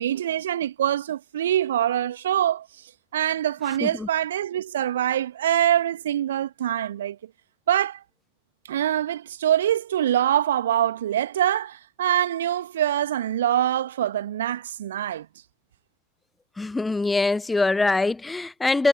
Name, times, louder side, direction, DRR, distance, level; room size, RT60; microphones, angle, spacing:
voice 1, 0.0-2.7 3.1-7.2 7.7-8.0 8.7-15.3, right 11 dB, 60° right, 2.5 m, -24 dB
voice 2, 16.6-18.9, left 3 dB, 10° left, 0.9 m, -23 dB
figure-of-eight pair, 90°, 0 cm